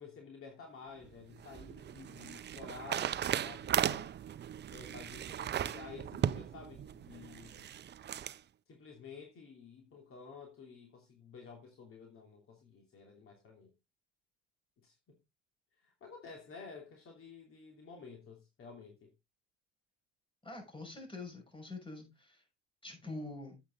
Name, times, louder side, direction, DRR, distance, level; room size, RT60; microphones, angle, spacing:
voice 1, 0.0-4.1 4.7-7.7 8.7-13.7 14.8-14.9 15.8-19.1, left 5 dB, 50° left, 3.0 m, -51 dB
sound 1, 1.0-8.4, right 10 dB, 35° right, 0.6 m, -37 dB
voice 2, 20.4-22.4 22.8-23.6, left 2 dB, 15° left, 6.3 m, -45 dB
9.1 x 8.6 x 3.8 m
hypercardioid pair, 75°, 29 cm